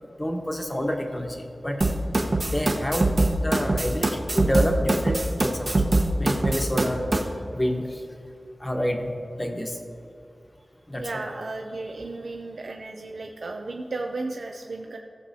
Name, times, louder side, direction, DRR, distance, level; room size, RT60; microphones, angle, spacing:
voice 1, 0.2-1.8 2.5-3.1 3.4-5.7 6.2-7.0 7.5-8.0 8.6-9.1 9.4-9.8 10.9-11.1, equal, 20° left, 2 dB, 1.2 m, -28 dB
sound 1, 1.8-7.2, right 2 dB, 50° right, 1.0 m, -23 dB
voice 2, 11.0-15.0, right 2 dB, 75° right, 2 dB, 0.5 m, -34 dB
16.0 x 6.9 x 2.8 m, 2.5 s
wide cardioid pair, 70°, 0 cm